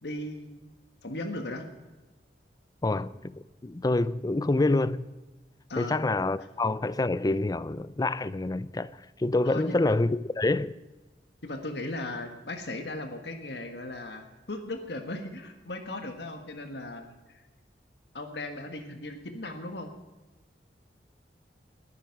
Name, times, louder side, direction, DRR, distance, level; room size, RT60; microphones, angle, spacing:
voice 1, 0.0-0.7 1.0-1.7 5.7-6.0 9.4-9.8 11.4-17.4 18.1-19.9, left 2 dB, 70° left, 1.5 m, -37 dB
voice 2, 2.8-3.3 3.6-5.0 5.8-8.9 9.2-10.8, left 2 dB, 20° left, 0.4 m, -27 dB
20.5 x 9.9 x 5.9 m
head